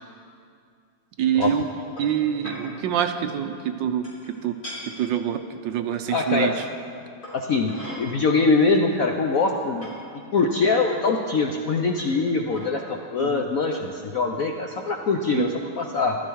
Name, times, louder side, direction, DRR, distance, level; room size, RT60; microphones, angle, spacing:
voice 1, 1.2-1.7 2.0-4.1 4.4-4.6 5.0-6.5 13.2-13.4 15.3-15.5, right 9 dB, 75° right, 8 dB, 1.3 m, -25 dB
sound 1, 1.4-1.6 2.0-2.2 2.4-2.6 4.0-4.3 4.6-4.8 6.0-6.1 7.2-8.0 8.8-8.9 9.3-9.9 10.8-10.9 12.0-12.2 12.5-12.7, left 1 dB, 45° left, 4.4 m, -40 dB
voice 2, 6.1-6.6 7.3-9.9 10.3-16.2, left 4 dB, 65° left, 2 dB, 0.8 m, -23 dB
13.5 x 12.5 x 4.6 m, 2.4 s
omnidirectional pair, 2.2 m